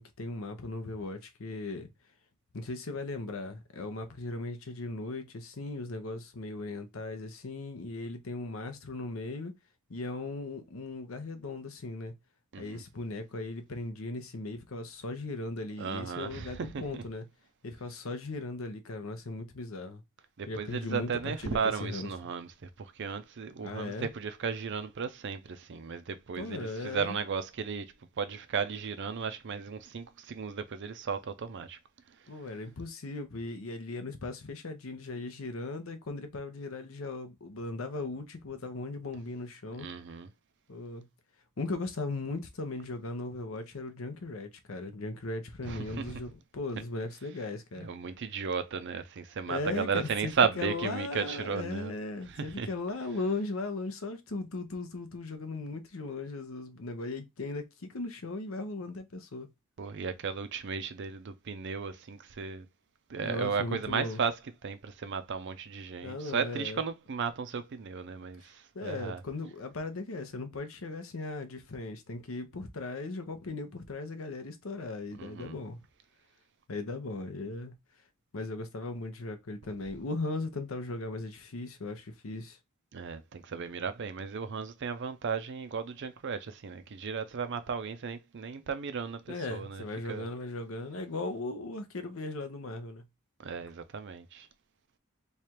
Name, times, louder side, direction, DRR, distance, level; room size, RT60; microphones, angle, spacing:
voice 1, 0.0-1.9 2.5-9.5 9.9-12.1 12.6-17.3 17.6-20.0 20.5-22.1 23.6-24.1 26.4-27.2 32.3-39.9 40.7-41.1 41.6-47.9 49.5-59.5 63.2-64.2 66.0-66.8 68.7-75.8 76.7-77.7 78.3-82.6 89.3-93.0, left 2 dB, 65° left, 0.7 m, -38 dB
voice 2, 12.5-12.8 15.8-17.0 20.4-31.8 32.1-32.4 39.8-40.3 45.6-46.2 47.8-51.9 52.3-52.7 59.8-62.7 63.1-69.2 75.1-75.6 82.9-90.3 93.4-94.5, right 6 dB, 55° right, 0.5 m, -35 dB
3.3 x 2.3 x 4.3 m
head